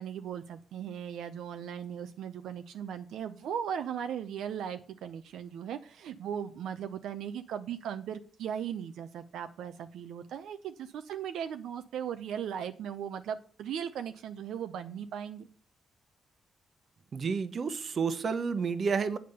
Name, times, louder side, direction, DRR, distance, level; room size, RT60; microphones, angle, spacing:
voice 1, 0.0-15.5, right 8 dB, 90° right, 0.5 m, -38 dB
voice 2, 17.1-19.2, right 5 dB, 50° right, 0.9 m, -30 dB
8.8 x 5.1 x 6.7 m
cardioid pair, 90°, 0 cm